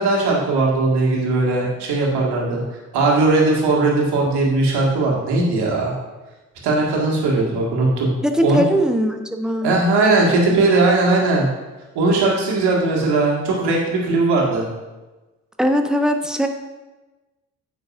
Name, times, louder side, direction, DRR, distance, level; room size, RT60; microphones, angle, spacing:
voice 1, 0.0-6.0 6.6-8.1 8.4-8.6 9.6-11.5 12.0-14.7, right 3 dB, 65° right, -3 dB, 2.1 m, -18 dB
voice 2, 8.2-9.7 15.6-16.5, equal, ahead, 4 dB, 0.9 m, -20 dB
9.0 x 6.6 x 2.6 m, 1.2 s
figure-of-eight pair, 40°, 44 cm